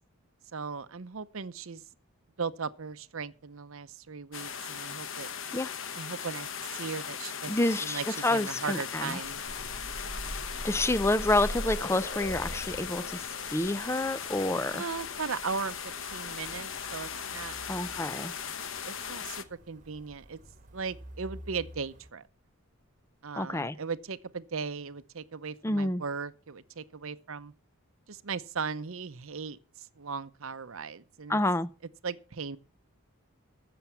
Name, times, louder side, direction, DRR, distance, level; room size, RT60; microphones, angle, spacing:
voice 1, 0.5-1.8 2.4-5.3 5.9-9.4 14.7-17.6 18.4-18.6 18.8-20.4 20.7-22.2 23.2-27.5 28.1-31.4 32.0-32.6, right 5 dB, 70° right, 0.7 m, -37 dB
sound 1, 4.3-19.4, left 7 dB, 60° left, 1.0 m, -38 dB
voice 2, 7.5-9.2 10.6-14.8 17.7-18.3 23.4-23.8 25.6-26.0 31.3-31.7, left 2 dB, 10° left, 0.5 m, -28 dB
sound 2, 9.1-16.8 17.9-18.0 18.4-18.5, equal, 35° left, 5.3 m, -41 dB
sound 3, 12.2-22.1, equal, 35° right, 1.4 m, -51 dB
15.0 x 7.0 x 5.7 m
head